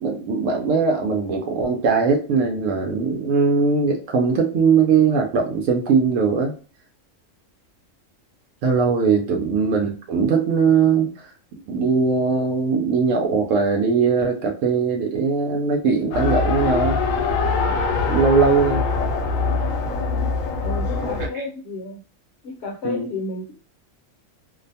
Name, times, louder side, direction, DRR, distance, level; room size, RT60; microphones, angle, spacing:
voice 1, 0.0-6.5 8.6-17.0 17.7-17.8 18.1-18.8 21.3-21.4 22.8-23.1, right 5 dB, 75° right, 2 dB, 0.9 m, -20 dB
Race car auto racing, 16.1-21.3, left 4 dB, 85° left, 1.0 m, -23 dB
voice 2, 20.6-22.0 22.4-23.5, left 2 dB, 65° left, -1 dB, 0.9 m, -32 dB
2.6 x 2.2 x 2.6 m, 0.37 s
omnidirectional pair, 1.3 m